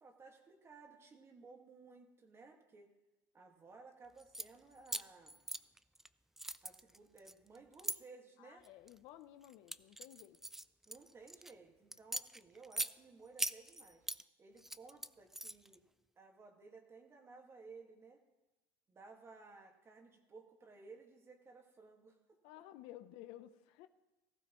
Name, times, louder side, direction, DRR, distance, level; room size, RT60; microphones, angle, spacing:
voice 1, 0.0-2.9 3.3-5.4 6.6-8.7 10.9-14.0 14.4-15.8 16.2-18.2 18.9-22.4, right 4 dB, 25° right, 3 dB, 1.8 m, -58 dB
sound 1, 4.2-4.5 4.9-6.1 6.4-8.0 8.6-9.0 9.4-11.5 11.9-12.9 13.4-14.2 14.6-15.8, right 1 dB, 5° right, 0.3 m, -41 dB
voice 2, 8.4-10.4 22.4-23.9, left 13 dB, 70° left, 11 dB, 0.7 m, -54 dB
16.0 x 14.5 x 3.1 m, 1.1 s
supercardioid pair, 115°, 10 cm